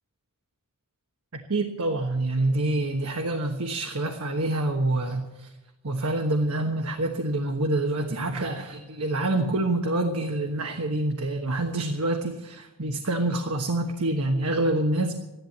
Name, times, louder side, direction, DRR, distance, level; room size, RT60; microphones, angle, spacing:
voice 1, 1.5-5.5 5.8-15.2, right 2 dB, 80° right, 3 dB, 1.3 m, -26 dB
14.0 x 11.5 x 7.3 m, 1.0 s
head